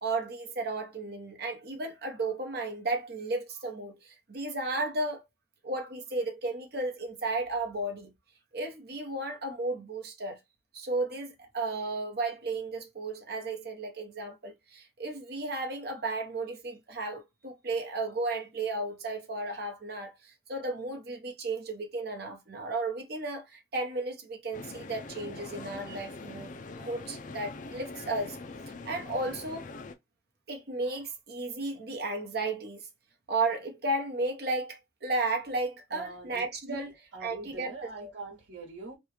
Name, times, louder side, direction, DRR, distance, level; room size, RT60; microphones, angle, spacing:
voice 1, 0.0-5.2 5.6-8.1 8.5-10.4 10.7-28.4 28.8-29.6 30.5-32.9 33.3-36.9 37.2-38.1, right 2 dB, 55° right, 0.9 m, -34 dB
sound 1, 24.5-29.9, left 3 dB, 45° left, 0.4 m, -43 dB
voice 2, 35.9-39.0, right 3 dB, 80° right, 1.2 m, -44 dB
3.1 x 2.3 x 3.2 m
head